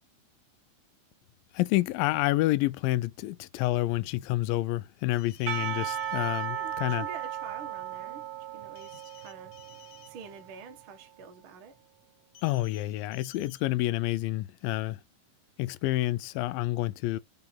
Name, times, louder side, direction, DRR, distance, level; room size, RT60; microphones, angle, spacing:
voice 1, 1.5-7.1 12.4-15.0 15.6-17.2, left 17 dB, 85° left, 2.0 m, -28 dB
sound 1, 5.1-6.5 8.8-10.1 12.4-12.8 13.1-13.6, left 11 dB, 70° left, 2.3 m, -54 dB
Percussion / Church bell, 5.5-10.7, right 10 dB, 70° right, 2.5 m, -36 dB
voice 2, 6.5-8.3 8.5-9.5 10.1-11.8, right 5 dB, 85° right, 1.1 m, -46 dB
5.7 x 3.6 x 5.8 m
omnidirectional pair, 4.5 m